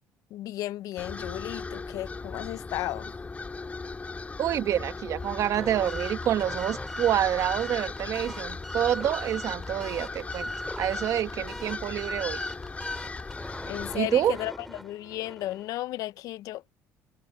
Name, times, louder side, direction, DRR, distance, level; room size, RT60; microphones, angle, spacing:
voice 1, 0.3-3.1 13.6-16.7, left 15 dB, 70° left, 0.7 m, -34 dB
sound 1, 1.0-14.0, left 3 dB, 25° left, 2.7 m, -37 dB
voice 2, 4.4-10.5 10.8-12.4 13.9-14.3, right 11 dB, 60° right, 1.6 m, -27 dB
sound 2, 5.2-15.8, equal, ahead, 3.6 m, -41 dB
supercardioid pair, 85°, 6 cm